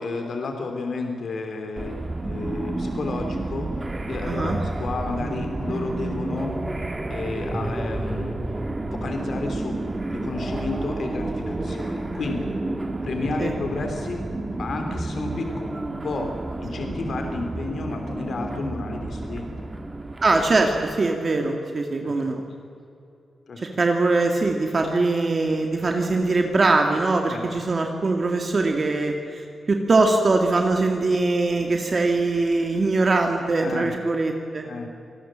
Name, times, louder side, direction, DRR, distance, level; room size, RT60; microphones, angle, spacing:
voice 1, 0.0-3.7 4.1-6.5 7.1-8.6 8.9-9.8 10.1-12.5 13.0-14.2 14.6-16.3 16.6-19.5 22.0-22.4 23.5-23.6 27.3-27.4 33.6-33.9 34.6-34.9, left 3 dB, 60° left, 4 dB, 3.1 m, -31 dB
sound 1, 1.8-21.0, right 2 dB, 20° right, 1.8 m, -30 dB
voice 2, 4.2-4.6 13.4-13.5 20.2-22.4 23.8-34.7, right 3 dB, 35° right, 3 dB, 2.2 m, -22 dB
26.5 x 19.5 x 7.5 m, 2.7 s
wide cardioid pair, 130°, 0 cm